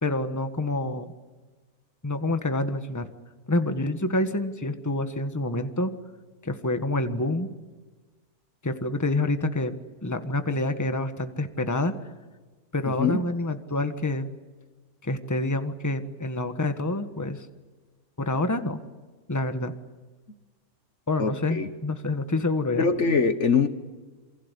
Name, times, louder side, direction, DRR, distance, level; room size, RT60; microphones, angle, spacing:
voice 1, 0.0-1.1 2.0-3.1 3.5-5.9 6.4-7.5 8.6-9.7 10.0-11.9 12.7-14.3 15.0-17.5 18.2-18.8 19.3-19.7 21.1-22.9, left 2 dB, 10° left, 1.4 m, -27 dB
voice 2, 21.2-21.7 22.8-23.7, left 5 dB, 50° left, 1.5 m, -23 dB
28.0 x 24.5 x 8.4 m
omnidirectional pair, 1.6 m